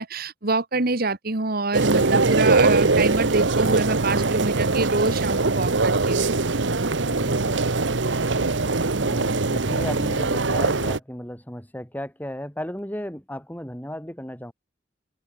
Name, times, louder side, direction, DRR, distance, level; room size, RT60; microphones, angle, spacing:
voice 1, 0.0-6.3, right 3 dB, 55° right, 1.8 m, -26 dB
sound 1, 1.7-11.0, right 3 dB, 75° right, 1.2 m, -22 dB
voice 2, 9.0-14.5, equal, 10° left, 4.4 m, -35 dB
head